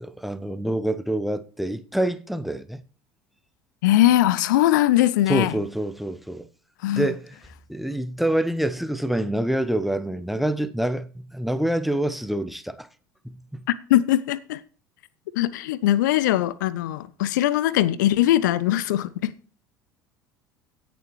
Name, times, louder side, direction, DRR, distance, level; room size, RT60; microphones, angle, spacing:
voice 1, 0.0-2.8 5.3-6.5 7.0-7.4 7.7-12.9 13.2-13.6, right 1 dB, ahead, 0.8 m, -26 dB
voice 2, 3.8-5.5 6.8-7.1 13.9-14.6 15.4-19.3, left 13 dB, 65° left, 0.6 m, -21 dB
17.0 x 7.0 x 3.1 m
figure-of-eight pair, 65°, 11 cm